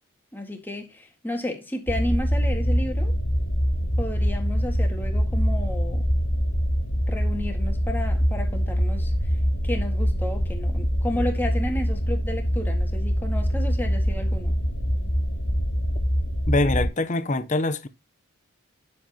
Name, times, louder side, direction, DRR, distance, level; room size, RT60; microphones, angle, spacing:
voice 1, 0.3-3.1 4.0-6.1 7.1-9.1 9.6-14.5, left 1 dB, 10° left, 1.8 m, -32 dB
sound 1, 1.9-16.9, equal, 85° left, 3.1 m, -24 dB
voice 2, 16.5-17.9, left 2 dB, 35° left, 0.7 m, -24 dB
9.4 x 7.5 x 2.9 m
head